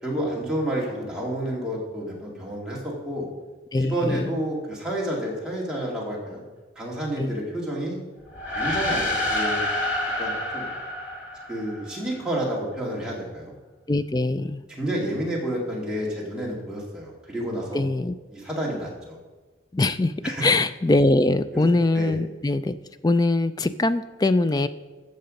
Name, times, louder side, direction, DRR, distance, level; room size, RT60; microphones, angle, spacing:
voice 1, 0.0-3.3 3.8-6.4 6.8-8.0 8.5-9.7 10.2-10.7 11.5-13.5 14.8-17.8 18.3-19.2 20.2-20.5 21.5-21.7 21.9-22.2, right 1 dB, 5° right, -5 dB, 2.2 m, -30 dB
voice 2, 3.7-4.4 7.2-7.4 13.9-14.6 17.7-18.1 19.7-22.8 23.0-24.7, left 2 dB, 20° left, 12 dB, 0.3 m, -22 dB
sound 1, 8.3-12.0, left 1 dB, 85° left, 2.4 m, -28 dB
14.0 x 6.7 x 5.2 m, 1.3 s
head